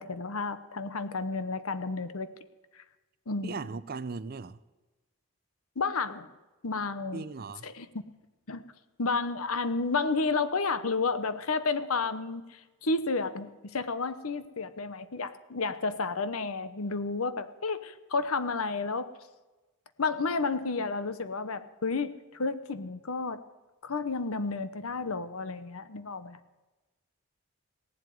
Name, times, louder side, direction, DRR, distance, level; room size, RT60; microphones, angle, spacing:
voice 1, 0.0-2.3 3.3-3.6 5.8-6.3 6.6-7.2 7.6-7.9 8.5-8.6 9.0-19.1 20.0-23.4 23.8-26.4, left 4 dB, 80° left, 0.9 m, -31 dB
voice 2, 3.4-4.6 7.1-7.7, right 4 dB, 45° right, 0.5 m, -38 dB
17.0 x 7.7 x 9.3 m
head